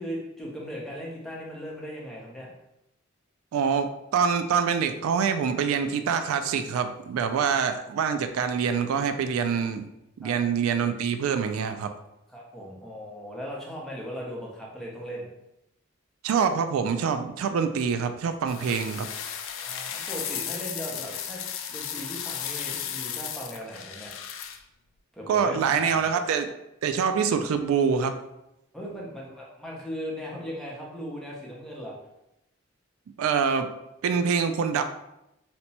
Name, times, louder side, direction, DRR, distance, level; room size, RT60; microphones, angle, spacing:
voice 1, 0.0-2.5 7.3-7.4 10.2-10.4 12.3-15.3 19.5-21.4 21.7-24.1 25.1-26.1 28.7-31.9, equal, ahead, -4 dB, 0.7 m, -38 dB
voice 2, 3.5-9.9 10.2-11.9 16.2-19.1 25.3-26.5 26.8-28.2 33.2-33.7 34.0-34.8, right 6 dB, 90° right, 8 dB, 0.3 m, -25 dB
sound 1, 18.5-24.6, left 8 dB, 65° left, 0.3 m, -35 dB
2.8 x 2.2 x 4.0 m, 0.87 s
head